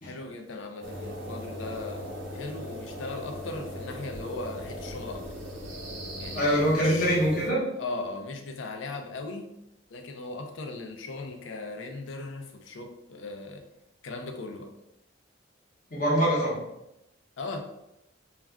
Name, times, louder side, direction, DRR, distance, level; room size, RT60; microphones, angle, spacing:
voice 1, 0.0-5.3 6.2-7.2 7.8-9.5 9.9-13.6 14.0-14.7 17.4-17.6, left 3 dB, 70° left, 4 dB, 0.4 m, -38 dB
sound 1, 0.8-7.5, equal, 85° right, 0.7 m, -39 dB
voice 2, 6.3-7.6 15.9-16.6, equal, 45° left, -6 dB, 0.8 m, -24 dB
2.3 x 2.2 x 3.5 m, 0.85 s
head